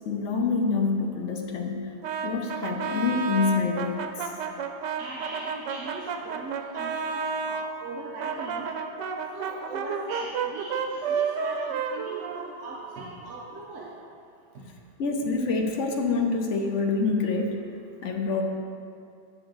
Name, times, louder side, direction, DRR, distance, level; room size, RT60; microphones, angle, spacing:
voice 1, 0.0-1.9 2.2-4.0 15.0-17.6 18.0-18.4, left 4 dB, 60° left, 2 dB, 0.8 m, -26 dB
Brass instrument, 2.0-7.7 8.2-13.0, right 5 dB, 90° right, 1.2 m, -31 dB
voice 2, 5.0-8.7 9.3-13.9 14.5-14.6, right 3 dB, 55° right, -4 dB, 1.0 m, -40 dB
8.8 x 6.2 x 3.9 m, 2.4 s
omnidirectional pair, 1.8 m